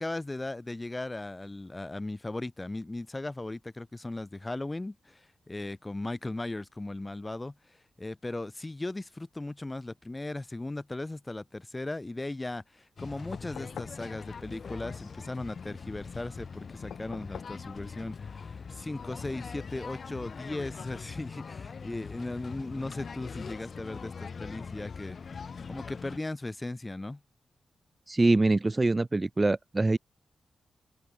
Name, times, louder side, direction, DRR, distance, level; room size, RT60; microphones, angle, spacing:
voice 1, 0.0-27.2, left 2 dB, 25° left, 5.8 m, -37 dB
sound 1, 13.0-26.2, left 5 dB, 60° left, 3.4 m, -42 dB
sound 2, 13.3-14.0 16.9-17.6 19.2-19.3, left 9 dB, 85° left, 3.5 m, -45 dB
voice 2, 28.1-30.0, right 2 dB, 30° right, 2.1 m, -24 dB
cardioid pair, 60°, 0 cm